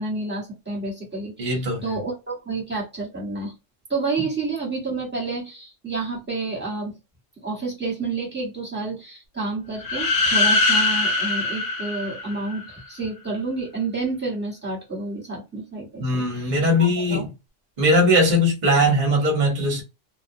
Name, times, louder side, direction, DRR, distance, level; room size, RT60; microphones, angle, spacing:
voice 1, 0.0-3.5 3.9-7.0 7.4-16.6 17.1-17.3, right 3 dB, 10° right, 1.1 m, -29 dB
voice 2, 1.4-1.8 16.0-17.3 17.8-19.8, equal, 40° right, 0.9 m, -20 dB
sound 1, 9.8-12.7, left 2 dB, 75° left, 1.0 m, -22 dB
2.2 x 2.2 x 2.6 m
omnidirectional pair, 1.3 m